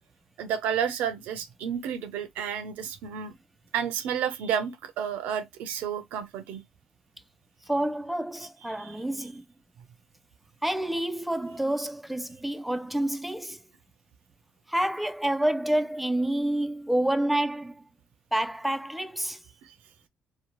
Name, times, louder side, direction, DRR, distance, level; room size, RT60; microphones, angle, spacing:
voice 1, 0.4-3.3 3.7-6.6, right 8 dB, 85° right, 0.5 m, -31 dB
voice 2, 7.7-9.4 10.6-13.6 14.7-17.8 18.3-19.4, right 1 dB, 5° right, 0.4 m, -28 dB
2.7 x 2.1 x 2.9 m
supercardioid pair, 65°, 3 cm